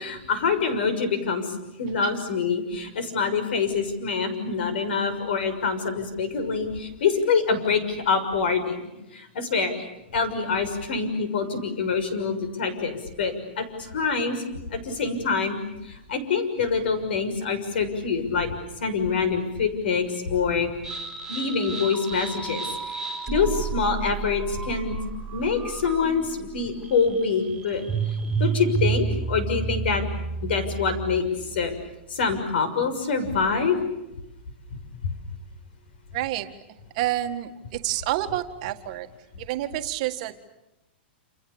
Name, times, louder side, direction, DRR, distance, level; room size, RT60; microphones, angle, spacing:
voice 1, 0.0-14.4 14.7-15.6 15.8-18.5 18.8-20.7 21.3-25.0 25.3-27.9 28.4-30.0 30.4-31.2 31.5-31.7 32.1-33.8 35.0-35.1, left 5 dB, 65° left, 10 dB, 6.4 m, -25 dB
sound 1, 20.8-31.4, right 5 dB, 5° right, 3.6 m, -31 dB
voice 2, 36.1-36.5 36.9-39.1 39.4-40.3, right 14 dB, 35° right, 6 dB, 1.8 m, -28 dB
29.0 x 28.5 x 7.1 m, 0.93 s
supercardioid pair, 175°, 6 cm